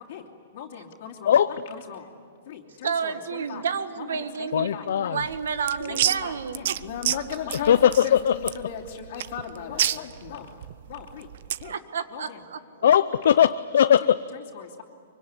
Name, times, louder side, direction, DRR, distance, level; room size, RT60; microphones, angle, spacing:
voice 1, 0.5-1.4 1.7-2.1 2.4-3.7 4.0-5.2 5.8-10.6 10.9-11.3 11.6-11.7 12.1-12.4 14.0-14.8, left 8 dB, 40° left, -1 dB, 2.9 m, -38 dB
voice 2, 2.8-4.7 5.0-6.7 11.6-12.6, right 6 dB, 90° right, 10 dB, 1.9 m, -30 dB
voice 3, 4.5-5.2 7.7-8.3 12.8-14.2, left 9 dB, 60° left, 11 dB, 0.6 m, -19 dB
sound 1, 5.2-11.7, right 11 dB, 45° right, 0.6 m, -30 dB
24.5 x 24.5 x 9.9 m, 2.3 s
hypercardioid pair, 175°, 0 cm